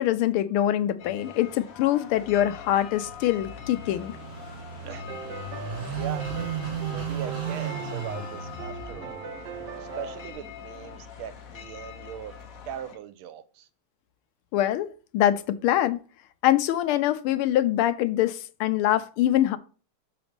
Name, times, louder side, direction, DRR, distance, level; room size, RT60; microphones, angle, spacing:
voice 1, 0.0-4.1 14.5-16.0 16.4-19.6, left 12 dB, 85° left, 1.5 m, -24 dB
sound 1, 1.0-13.0, left 9 dB, 55° left, 1.0 m, -44 dB
Car passing by / Idling, 2.1-12.8, right 6 dB, 45° right, 2.4 m, -37 dB
sound 2, 4.9-10.3, right 7 dB, 60° right, 1.3 m, -40 dB
voice 2, 5.9-6.4 6.9-9.2 9.8-12.4 12.7-13.7, right 9 dB, 85° right, 1.5 m, -40 dB
6.0 x 4.0 x 5.1 m
omnidirectional pair, 2.4 m